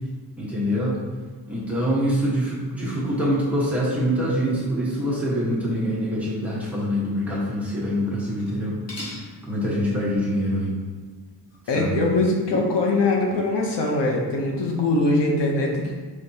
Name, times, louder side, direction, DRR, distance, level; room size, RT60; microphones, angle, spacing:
voice 1, 0.4-1.0 1.5-8.8 9.4-10.7 11.7-12.0, equal, 5° right, -8 dB, 1.2 m, -24 dB
sound 1, 8.4-8.6 8.9-9.3 11.5-11.6 12.5-12.9, equal, 40° left, 0.9 m, -34 dB
voice 2, 11.7-15.9, left 2 dB, 80° left, 0 dB, 0.8 m, -22 dB
5.2 x 3.4 x 2.7 m, 1.4 s
wide cardioid pair, 130°, 41 cm